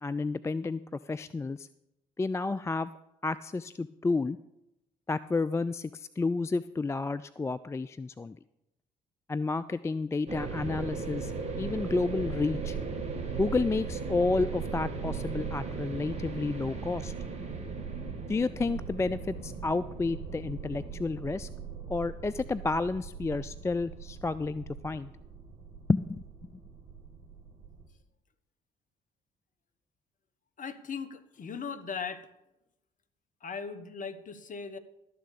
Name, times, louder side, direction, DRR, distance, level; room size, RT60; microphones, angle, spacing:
voice 1, 0.0-1.7 2.2-2.9 3.2-4.4 5.1-8.4 9.3-12.8 13.4-17.1 18.3-21.5 21.9-25.1 25.9-26.2, left 3 dB, 15° left, 15 dB, 0.4 m, -31 dB
sound 1, 10.3-27.9, right 5 dB, 30° right, 2.5 m, -38 dB
voice 2, 30.6-32.3 33.4-34.8, left 5 dB, 40° left, 10 dB, 1.2 m, -38 dB
12.5 x 6.9 x 6.7 m, 0.88 s
figure-of-eight pair, 45°, 21 cm